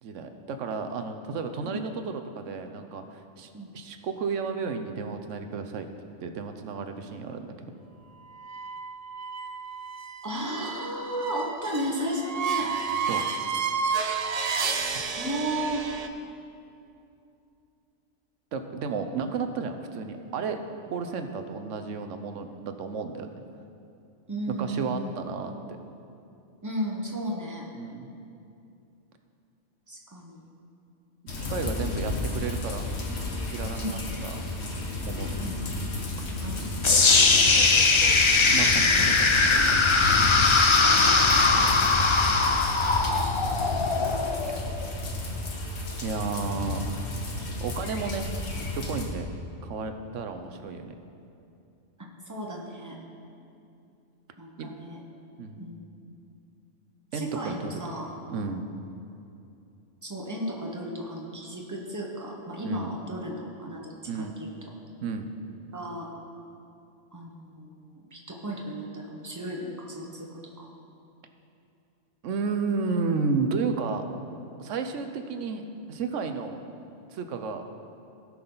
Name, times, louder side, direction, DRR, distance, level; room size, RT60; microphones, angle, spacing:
voice 1, 0.0-5.9 6.2-7.5 13.1-13.2 18.5-20.6 20.9-23.3 24.6-25.5 27.7-28.1 31.2-32.9 33.5-34.4 35.0-35.4 38.5-40.0 44.5-44.6 46.0-46.9 47.6-48.3 48.5-49.3 49.6-50.9 54.6-54.7 55.4-55.6 57.1-57.8 58.3-58.6 62.6-62.9 64.1-64.3 65.0-65.3 72.2-74.0 74.6-76.6 77.1-77.6, right 4 dB, 85° right, 7 dB, 1.1 m, -32 dB
sound 1, 8.4-16.1, right 5 dB, 45° right, 0.5 m, -31 dB
voice 2, 10.2-12.7 15.1-15.8 24.3-25.2 26.6-27.7 29.9-30.4 33.7-34.0 35.4-35.6 36.4-36.7 41.0-41.4 52.3-53.0 54.4-55.0 55.6-55.8 57.1-58.1 60.0-64.5 65.7-66.1 67.1-70.3 70.6-70.7, right 1 dB, 15° right, -1 dB, 1.2 m, -34 dB
sound 2, 31.3-49.0, left 2 dB, 65° left, 1.5 m, -32 dB
sound 3, 36.8-44.9, left 4 dB, 35° left, 0.5 m, -21 dB
17.5 x 6.1 x 4.0 m, 2.6 s
omnidirectional pair, 1.2 m